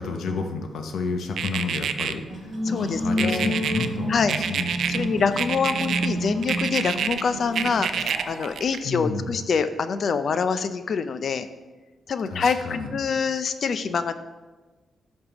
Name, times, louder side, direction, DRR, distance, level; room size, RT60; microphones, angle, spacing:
voice 1, 0.0-2.5 2.8-5.3 8.8-9.4 12.2-12.9, left 4 dB, 80° left, 5 dB, 0.9 m, -31 dB
sound 1, 1.4-2.1 3.2-3.9 4.3-5.1 5.4-6.1 6.4-7.2 7.6-9.0, right 8 dB, 75° right, 0.4 m, -27 dB
sound 2, 2.3-8.6, equal, 45° right, 1.3 m, -30 dB
voice 2, 2.7-3.5 4.1-4.3 4.9-11.5 12.1-14.1, left 5 dB, 60° left, 11 dB, 0.5 m, -25 dB
13.0 x 5.4 x 3.0 m, 1.2 s
cardioid pair, 85°, 0 cm